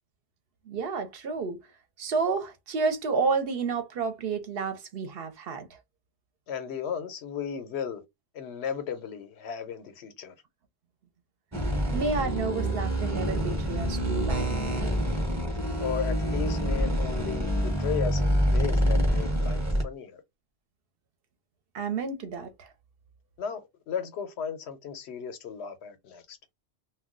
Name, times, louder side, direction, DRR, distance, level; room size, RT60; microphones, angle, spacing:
voice 1, 0.7-1.6 2.0-5.7 11.9-14.8 21.7-22.7, right 4 dB, 65° right, 0.8 m, -30 dB
voice 2, 6.5-8.0 8.3-10.3 15.8-20.2 23.4-26.4, left 7 dB, 80° left, 0.9 m, -35 dB
sound 1, 11.5-19.8, equal, 20° right, 0.7 m, -26 dB
2.3 x 2.1 x 3.7 m
omnidirectional pair, 1.1 m